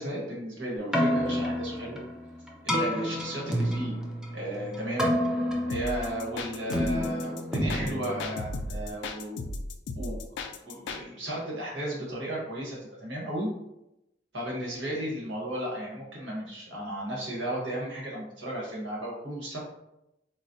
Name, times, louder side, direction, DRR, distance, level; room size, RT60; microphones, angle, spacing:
voice 1, 0.0-2.0 2.6-3.9 4.3-5.1 5.7-9.5 9.9-10.2 10.6-13.5 14.3-19.6, right 1 dB, 85° right, -4 dB, 1.2 m, -34 dB
Keyboard (musical), 0.8-8.9, equal, 5° right, 0.4 m, -30 dB
sound 1, 5.7-11.0, left 2 dB, 70° left, 0.3 m, -35 dB
4.0 x 2.1 x 2.6 m, 0.87 s
head